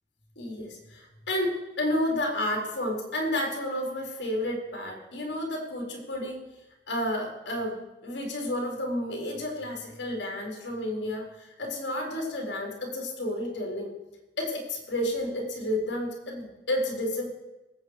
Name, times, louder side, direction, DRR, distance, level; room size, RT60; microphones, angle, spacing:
voice 1, 0.4-6.4 6.9-7.8 8.0-13.9 14.4-17.3, left 1 dB, 65° left, 0 dB, 4.2 m, -31 dB
20.5 x 8.6 x 4.9 m, 1.0 s
head